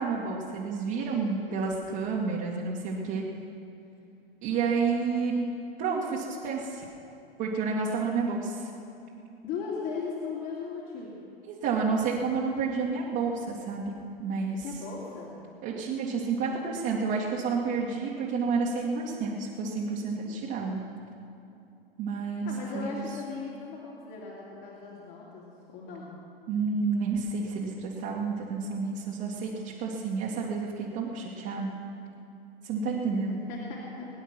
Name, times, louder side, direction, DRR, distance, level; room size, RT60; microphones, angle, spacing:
voice 1, 0.0-3.2 4.4-5.5 5.8-6.8 7.4-8.7 11.5-13.8 14.2-14.6 15.6-20.8 22.0-23.0 26.5-31.7 32.6-33.4, right 4 dB, 40° right, -4 dB, 2.1 m, -30 dB
voice 2, 0.9-2.1 9.4-11.2 14.6-15.3 22.4-26.1 33.3-34.1, left 5 dB, 45° left, -5 dB, 2.8 m, -38 dB
22.0 x 10.0 x 6.0 m, 2.6 s
figure-of-eight pair, 95°, 30 cm